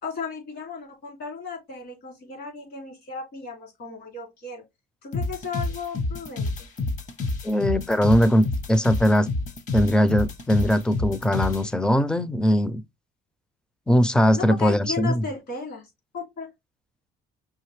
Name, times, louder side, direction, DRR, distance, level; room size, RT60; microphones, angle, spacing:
voice 1, 0.0-4.6 5.0-6.7 14.3-15.8 16.1-16.5, left 5 dB, 70° left, 2.9 m, -35 dB
sound 1, 5.1-11.6, left 3 dB, 45° left, 0.9 m, -29 dB
voice 2, 7.4-9.3 9.7-12.8 13.9-15.2, equal, 5° left, 0.4 m, -20 dB
5.7 x 2.6 x 3.1 m
cardioid pair, 110°, 17 cm